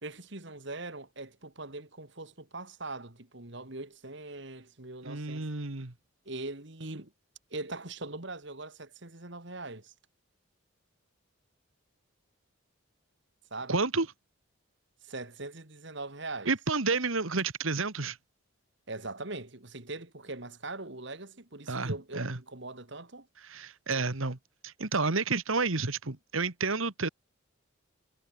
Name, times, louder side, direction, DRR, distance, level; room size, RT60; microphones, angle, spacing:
voice 1, 0.0-5.5 6.3-7.1 7.5-9.9 13.5-13.8 15.0-16.5 18.9-23.3, right 2 dB, 55° right, 2.3 m, -41 dB
voice 2, 5.0-5.9 13.7-14.1 16.5-18.2 21.7-22.4 23.5-24.4 24.6-27.1, right 3 dB, 75° right, 1.8 m, -30 dB
head